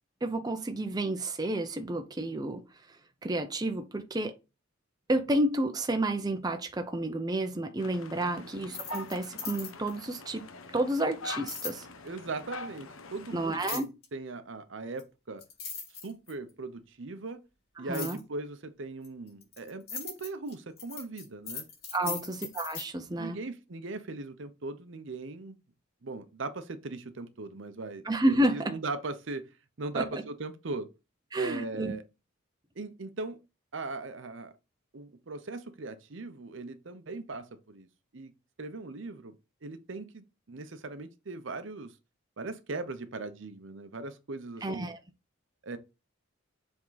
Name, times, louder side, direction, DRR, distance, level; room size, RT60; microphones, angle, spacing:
voice 1, 0.2-2.6 2.9-3.0 3.2-4.3 5.1-10.4 10.7-11.9 13.3-13.9 17.8-18.2 21.9-23.4 28.0-28.7 29.9-30.1 31.3-31.9 44.6-45.0, right 1 dB, 20° right, 0.6 m, -30 dB
sound 1, 7.8-13.7, left 3 dB, 75° left, 0.8 m, -44 dB
voice 2, 8.2-8.5 12.0-15.4 16.0-17.4 17.8-21.6 22.0-22.3 23.2-25.6 26.0-29.5 29.8-30.9 31.3-32.0 32.8-33.4 33.7-34.5 34.9-37.9 38.1-38.3 38.6-39.3 39.6-41.9 42.4-44.9 45.6-45.8, right 3 dB, 60° right, 0.7 m, -39 dB
sound 2, 8.6-10.0 11.5-11.8 13.6-14.1 15.0-15.1 15.4-16.5 17.9-18.2 19.0-22.9, left 6 dB, 50° left, 3.2 m, -39 dB
7.3 x 3.6 x 3.9 m
head